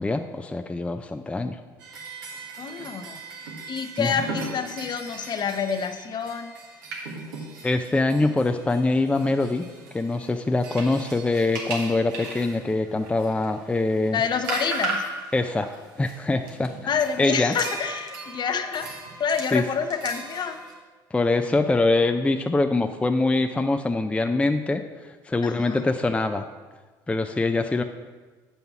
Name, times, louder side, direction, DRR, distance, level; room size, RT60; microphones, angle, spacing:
voice 1, 0.0-1.6 4.0-4.1 7.6-9.6 9.9-14.2 15.3-15.7 16.0-16.9 17.2-17.5 19.5-19.6 21.1-24.8 25.2-26.4 27.1-27.8, left 2 dB, 10° left, 6 dB, 0.4 m, -23 dB
sound 1, 1.8-20.7, right 3 dB, 85° right, 1.5 m, -37 dB
voice 2, 2.6-3.2 3.7-6.5 14.1-15.0 16.8-18.9 19.2-20.6 25.4-25.8, left 6 dB, 45° left, 8 dB, 0.8 m, -28 dB
7.9 x 5.6 x 5.8 m, 1.3 s
hypercardioid pair, 70°, 10 cm